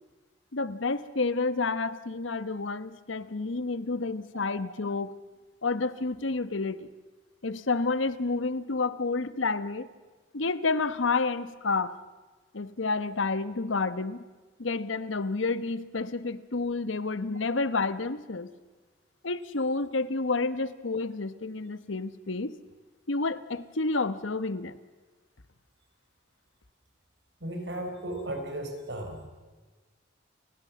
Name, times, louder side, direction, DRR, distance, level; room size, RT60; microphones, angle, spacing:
voice 1, 0.5-5.1 5.6-6.9 7.4-9.9 10.3-12.0 12.5-14.2 14.6-18.5 19.2-22.5 23.1-24.8, left 3 dB, 90° left, 14 dB, 1.1 m, -30 dB
voice 2, 27.4-29.2, right 1 dB, 65° right, 4 dB, 4.8 m, -35 dB
30.0 x 17.0 x 7.4 m, 1.3 s
head